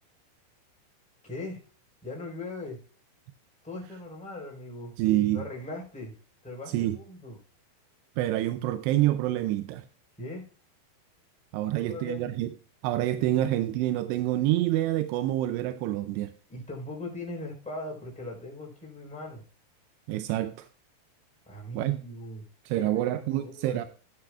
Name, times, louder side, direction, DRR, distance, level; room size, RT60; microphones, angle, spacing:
voice 1, 1.2-1.6 2.0-2.8 3.6-4.9 5.3-6.1 6.4-7.4 10.2-10.4 11.6-12.3 16.5-19.4 21.4-22.4 22.7-23.9, left 2 dB, ahead, 3.3 m, -39 dB
voice 2, 5.0-5.4 6.7-7.0 8.2-9.9 11.5-12.5 12.8-16.3 20.1-20.7 21.7-22.0 22.7-23.9, right 14 dB, 80° right, 2.6 m, -27 dB
15.5 x 9.5 x 2.4 m
omnidirectional pair, 5.2 m